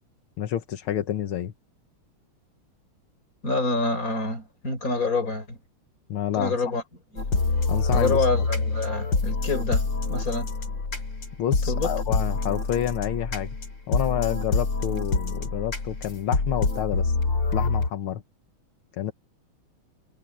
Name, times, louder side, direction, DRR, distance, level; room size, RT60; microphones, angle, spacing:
voice 1, 0.4-1.5 6.1-6.6 7.7-8.5 11.4-13.5 13.9-17.2 17.5-18.2 18.9-19.1, left 11 dB, 85° left, 1.9 m, -29 dB
voice 2, 3.4-5.6 6.3-6.8 7.1-7.2 7.9-10.5 11.7-11.9, left 3 dB, 40° left, 5.4 m, -27 dB
sound 1, 7.2-17.9, left 3 dB, 60° left, 3.9 m, -26 dB
omnidirectional pair, 2.3 m